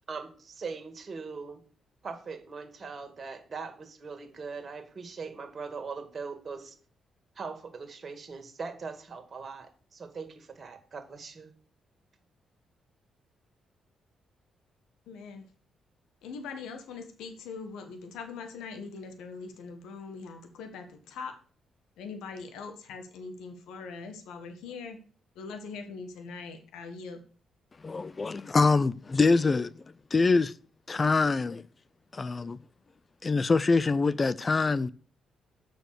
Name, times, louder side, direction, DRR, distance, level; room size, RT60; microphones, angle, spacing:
voice 1, 0.1-1.6 2.0-6.8 7.4-11.5, right 4 dB, 45° right, 1.9 m, -40 dB
voice 2, 15.1-15.5 16.2-21.3 22.0-25.0 25.3-27.2, left 4 dB, 75° left, 1.4 m, -42 dB
voice 3, 27.8-29.8 30.1-30.5 30.9-31.6 32.1-32.6 33.2-34.9, left 4 dB, 40° left, 0.4 m, -24 dB
6.8 x 6.1 x 6.6 m
hypercardioid pair, 45°, 0 cm